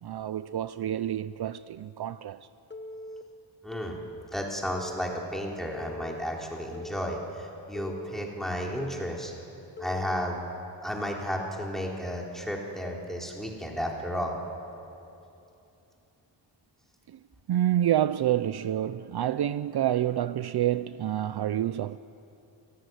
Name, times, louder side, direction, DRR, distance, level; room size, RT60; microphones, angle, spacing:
voice 1, 0.0-2.5 17.1-17.2 17.5-22.0, right 12 dB, 60° right, 0.6 m, -28 dB
Telephone, 2.7-3.2 3.7-4.2 4.7-5.2 5.7-6.2 6.7-7.3 7.7-8.3 8.8-9.3 9.8-10.3, left 1 dB, 25° left, 1.2 m, -41 dB
voice 2, 3.6-4.0 4.3-9.3 9.8-10.5 10.8-14.4, equal, ahead, 3.8 m, -33 dB
29.0 x 18.0 x 9.3 m
wide cardioid pair, 145°, 44 cm